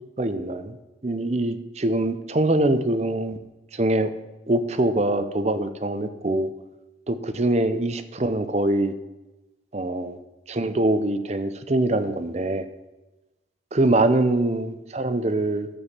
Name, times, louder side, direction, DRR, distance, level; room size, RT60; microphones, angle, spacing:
voice 1, 0.2-0.7 1.0-3.4 3.7-4.1 4.5-6.5 7.1-8.9 9.7-10.2 10.5-12.6 13.7-15.7, right 2 dB, 35° right, 10 dB, 0.6 m, -23 dB
7.2 x 6.9 x 7.3 m, 1.0 s
head